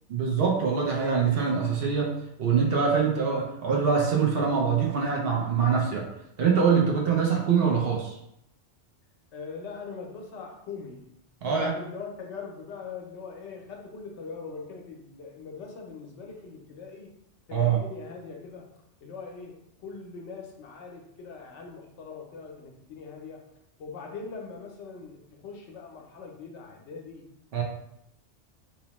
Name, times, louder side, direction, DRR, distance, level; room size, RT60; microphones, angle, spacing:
voice 1, 0.1-6.1 6.4-8.2 11.4-11.7 17.5-17.8 27.5-27.6, right 6 dB, 60° right, -1 dB, 0.7 m, -24 dB
voice 2, 9.3-11.1 11.5-17.1 17.5-18.7 19.0-23.4 23.8-27.3, left 4 dB, 75° left, 1 dB, 0.9 m, -41 dB
2.9 x 2.0 x 2.9 m, 0.78 s
omnidirectional pair, 1.2 m